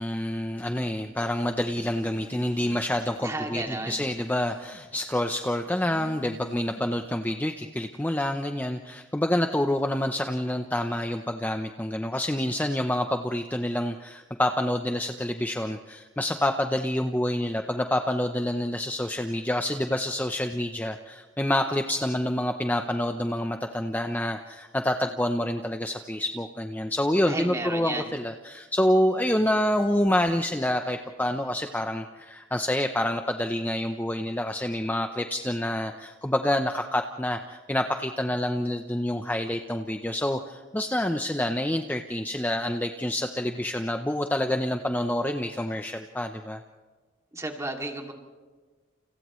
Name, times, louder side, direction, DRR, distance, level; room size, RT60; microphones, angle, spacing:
voice 1, 0.0-46.6, left 1 dB, 10° left, 5 dB, 0.7 m, -27 dB
Telephone, 1.7-3.0 3.3-5.0 5.6-7.1, equal, 40° right, 1.9 m, -49 dB
voice 2, 3.2-4.0 27.3-28.1 47.3-48.1, right 2 dB, 15° right, 2 dB, 2.6 m, -32 dB
29.5 x 29.5 x 3.2 m, 1.4 s
head